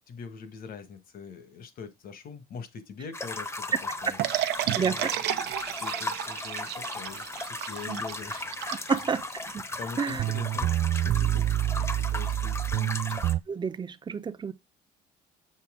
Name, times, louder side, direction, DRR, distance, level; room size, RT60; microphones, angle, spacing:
voice 1, 0.1-4.3 4.6-5.5 5.8-8.4 8.9-9.0 9.8-13.0, left 5 dB, 60° left, 1.6 m, -43 dB
sound 1, 3.1-13.3, left 2 dB, 15° left, 0.9 m, -36 dB
sound 2, 4.2-9.5, right 13 dB, 85° right, 0.8 m, -32 dB
voice 2, 4.8-5.1 7.9-8.0 8.9-9.2 9.5-9.6 10.0-10.2 13.5-14.5, right 6 dB, 25° right, 0.8 m, -29 dB
sound 3, 9.9-10.0 10.1-13.4, right 13 dB, 50° right, 0.4 m, -27 dB
7.6 x 5.5 x 3.7 m
cardioid pair, 110°, 17 cm